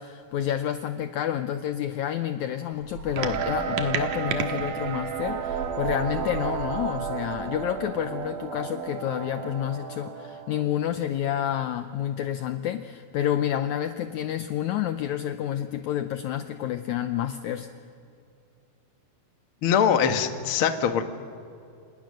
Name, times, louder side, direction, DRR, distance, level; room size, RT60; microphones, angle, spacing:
voice 1, 0.0-17.7, left 11 dB, 80° left, 9 dB, 1.7 m, -29 dB
sound 1, 2.7-8.0, right 5 dB, 90° right, 4.4 m, -40 dB
sound 2, 3.2-10.6, right 7 dB, 65° right, 2.7 m, -31 dB
voice 2, 19.6-21.1, left 7 dB, 55° left, 7 dB, 1.5 m, -22 dB
29.0 x 28.0 x 6.5 m, 2.5 s
omnidirectional pair, 4.3 m